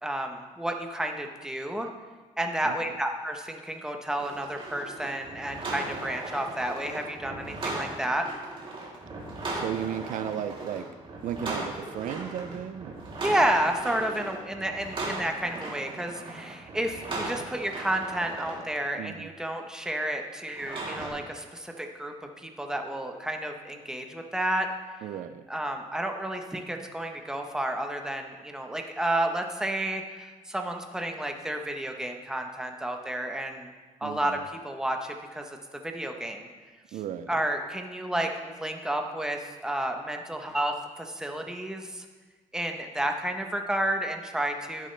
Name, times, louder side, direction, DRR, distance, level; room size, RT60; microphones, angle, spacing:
voice 1, 0.0-1.9 2.4-8.2 13.2-24.7 25.5-33.7 34.0-35.6 35.8-36.5 37.3-42.0 42.5-44.9, right 1 dB, 5° right, 3 dB, 1.0 m, -31 dB
sound 1, 4.2-18.6 20.5-21.1, right 2 dB, 40° right, 3.1 m, -37 dB
voice 2, 9.5-10.9 11.2-13.0 19.0-19.3 25.0-25.4 34.0-34.4 36.9-37.4, right 9 dB, 75° right, 11 dB, 0.5 m, -35 dB
12.0 x 9.9 x 3.3 m, 1.4 s
cardioid pair, 115°, 14 cm